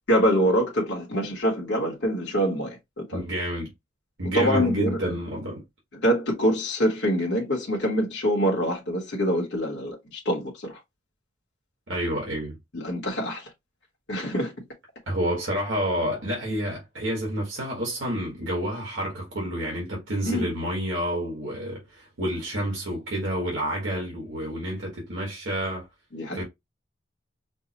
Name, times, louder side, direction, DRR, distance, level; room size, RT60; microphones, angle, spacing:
voice 1, 0.1-3.2 4.3-5.0 5.9-10.8 12.7-13.5 14.1-14.5 20.3-20.5 26.1-26.4, equal, 60° left, 1.1 m, -25 dB
voice 2, 3.1-3.7 4.2-5.6 11.9-12.6 15.1-25.8 26.3-26.4, equal, 75° right, 1.6 m, -29 dB
5.3 x 2.2 x 2.8 m
head